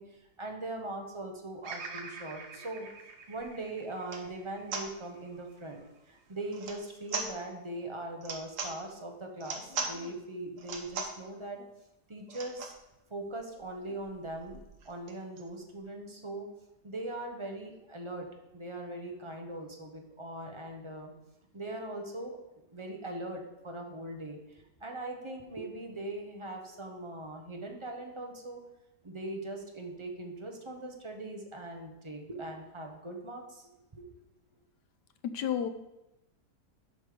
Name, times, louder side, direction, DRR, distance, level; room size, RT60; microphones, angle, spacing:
voice 1, 0.0-2.9 3.3-11.6 12.1-12.7 13.1-14.6 14.8-16.5 16.8-18.3 18.5-21.1 21.5-22.4 22.7-28.6 29.0-34.1, right 2 dB, 25° right, 2 dB, 0.8 m, -41 dB
Bird vocalization bird call bird song, 1.6-5.9 6.4-7.2, right 4 dB, 75° right, 1.5 m, -47 dB
sound 1, 3.4-3.5 4.0-4.3 4.7-4.9 6.5-6.8 7.1-7.3 8.2-8.7 9.4-9.9 10.6-11.2 12.3-12.8 13.3-13.4 13.6-13.7 14.0-15.5, right 4 dB, 55° right, 1.2 m, -38 dB
voice 2, 9.7-10.2 11.6-11.7 15.1-15.2 35.3-35.7, left 9 dB, 85° left, 9 dB, 1.3 m, -35 dB
7.8 x 5.5 x 5.0 m, 0.94 s
omnidirectional pair, 1.8 m